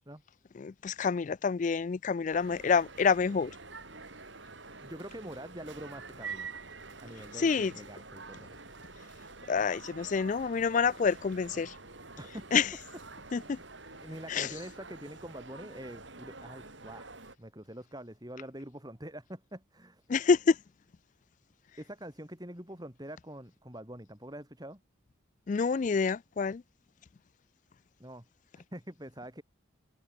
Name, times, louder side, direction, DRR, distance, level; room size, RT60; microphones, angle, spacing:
voice 1, 0.6-3.5 7.4-7.7 9.5-11.7 12.5-12.7 13.3-13.6 14.3-14.5 20.1-20.6 25.5-26.6, left 5 dB, 40° left, 0.3 m, -27 dB
sound 1, 2.3-17.4, right 4 dB, 60° right, 5.0 m, -47 dB
voice 2, 4.8-6.5 7.0-8.6 12.2-12.5 13.5-13.7 14.0-17.1 17.4-20.0 21.8-24.8 28.0-28.3 28.5-29.4, right 1 dB, 20° right, 5.0 m, -45 dB
head